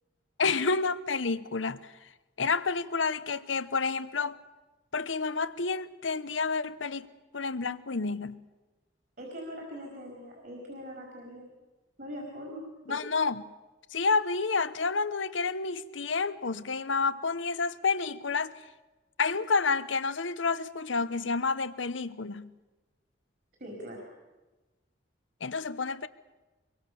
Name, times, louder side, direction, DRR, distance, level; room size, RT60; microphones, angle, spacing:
voice 1, 0.4-1.9 2.4-4.4 4.9-7.1 7.3-8.4 12.9-13.4 13.9-18.5 19.2-22.5 25.4-26.1, left 4 dB, 85° left, 1.0 m, -29 dB
voice 2, 9.2-11.5 12.0-13.0 23.6-24.0, equal, 50° right, 5.0 m, -42 dB
24.5 x 23.0 x 7.0 m
head